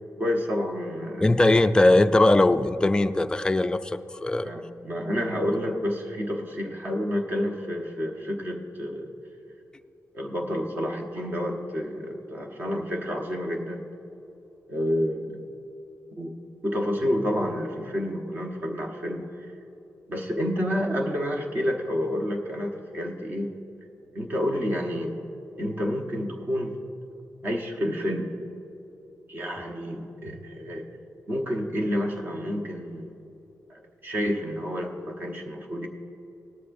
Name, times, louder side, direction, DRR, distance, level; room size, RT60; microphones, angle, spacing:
voice 1, 0.2-1.3 4.4-9.1 10.1-13.8 14.7-15.5 16.2-16.3 16.6-19.5 20.1-23.5 24.1-25.2 25.6-26.7 27.4-28.3 29.3-30.9 31.3-33.1 33.7-35.9, equal, 35° right, 1 dB, 1.0 m, -29 dB
voice 2, 1.2-4.5, left 2 dB, 15° left, 10 dB, 0.3 m, -20 dB
18.5 x 13.0 x 2.6 m, 3.0 s
wide cardioid pair, 165°, 6 cm